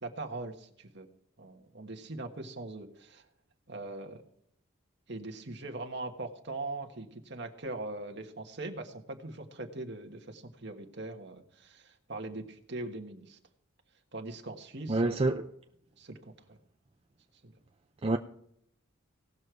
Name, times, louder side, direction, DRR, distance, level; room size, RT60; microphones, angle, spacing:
voice 1, 0.0-1.1 1.4-3.2 3.7-4.2 5.1-13.4 14.1-15.3 16.0-16.6 17.4-17.5, right 2 dB, 50° right, 1.4 m, -41 dB
voice 2, 14.9-15.5 18.0-18.2, right 2 dB, 25° right, 0.4 m, -27 dB
18.0 x 6.6 x 4.6 m
head